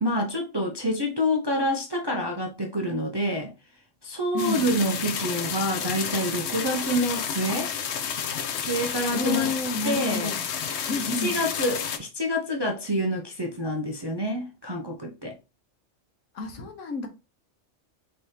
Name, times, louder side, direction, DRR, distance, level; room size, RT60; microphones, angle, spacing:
voice 1, 0.0-3.5 4.0-7.7 8.5-9.5 9.8-10.4 11.2-15.4, equal, 35° right, 0.4 m, -27 dB
voice 2, 4.3-4.7 9.1-10.4 10.9-11.4 16.3-17.1, left 3 dB, 80° left, 1.3 m, -30 dB
sound 1, 4.4-12.0, left 7 dB, 65° left, 0.8 m, -31 dB
4.7 x 3.3 x 2.8 m
omnidirectional pair, 1.3 m